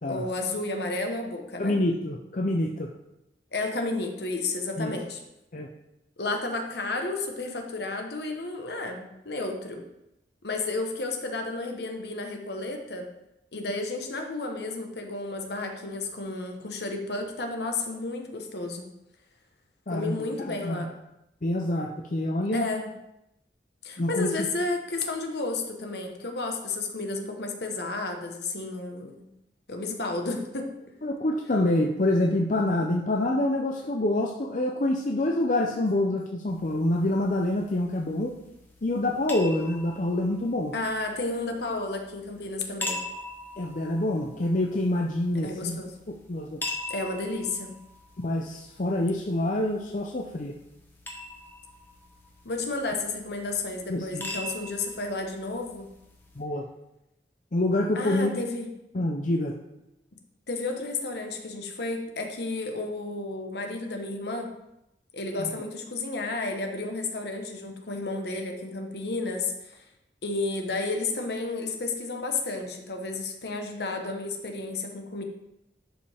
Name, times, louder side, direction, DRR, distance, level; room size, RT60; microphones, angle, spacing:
voice 1, 0.0-1.8 3.5-5.2 6.2-9.8 10.4-13.1 13.5-18.9 19.9-20.9 22.5-22.9 23.8-29.2 29.7-30.7 40.7-43.0 45.4-45.9 46.9-47.7 52.4-55.9 57.9-58.7 60.5-64.5 65.1-69.8 70.2-75.2, left 3 dB, 65° left, 3 dB, 1.2 m, -32 dB
voice 2, 1.6-2.9 4.8-4.9 5.5-5.7 19.9-20.8 21.4-22.7 24.0-24.3 31.0-38.3 38.8-40.7 43.6-45.8 46.3-46.6 48.2-50.5 53.9-54.2 56.4-56.7 57.5-58.4 58.9-59.5 65.4-65.5, left 1 dB, 45° left, 1 dB, 0.6 m, -26 dB
sound 1, 36.5-56.4, left 2 dB, 10° left, 1.0 m, -43 dB
11.0 x 5.4 x 3.5 m, 0.88 s
head